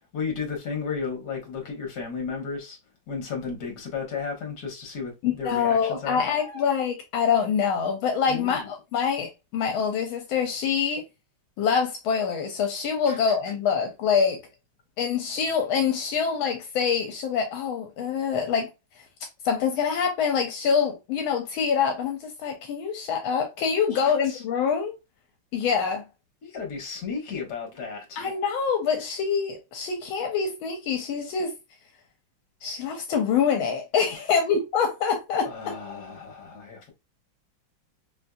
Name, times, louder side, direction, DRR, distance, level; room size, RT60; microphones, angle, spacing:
voice 1, 0.1-2.8 3.1-6.7 8.3-8.7 13.1-13.5 23.9-24.4 26.4-28.2 34.2-34.5 35.4-36.9, left 5 dB, 55° left, 1.5 m, -34 dB
voice 2, 5.2-11.0 11.6-14.4 15.0-18.7 19.4-24.9 25.5-26.0 28.2-31.5 32.6-35.7, left 6 dB, 80° left, 1.4 m, -25 dB
4.2 x 2.6 x 2.3 m
omnidirectional pair, 2.3 m